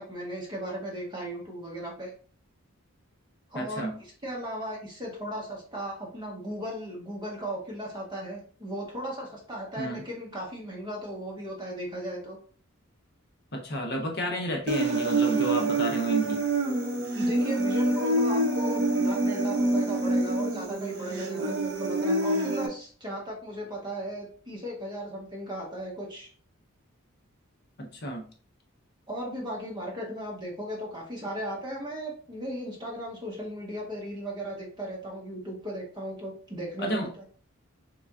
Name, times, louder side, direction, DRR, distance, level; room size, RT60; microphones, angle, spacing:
voice 1, 0.0-2.1 3.5-12.4 17.1-26.3 29.1-37.3, right 1 dB, 20° right, -3 dB, 1.0 m, -36 dB
voice 2, 3.5-3.9 9.8-10.0 13.5-16.4 27.8-28.3 36.8-37.1, right 1 dB, 50° left, 2 dB, 0.6 m, -31 dB
Human voice, 14.7-22.7, right 2 dB, 50° right, 0.7 m, -26 dB
3.7 x 3.4 x 2.3 m, 0.42 s
head